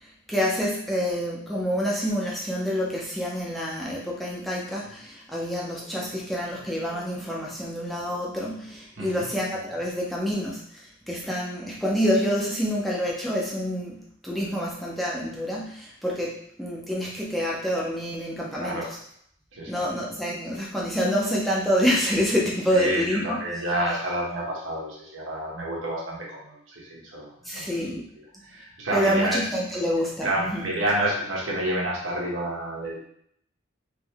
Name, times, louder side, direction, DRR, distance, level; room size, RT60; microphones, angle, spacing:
voice 1, 0.0-18.8 19.7-23.4 27.4-28.0 28.9-30.7, equal, ahead, -5 dB, 0.7 m, -27 dB
voice 2, 9.0-9.3 18.5-18.9 19.5-19.9 22.7-28.0 28.4-29.4 30.2-33.0, right 1 dB, 70° right, -4 dB, 1.4 m, -29 dB
3.6 x 3.2 x 3.5 m, 0.68 s
head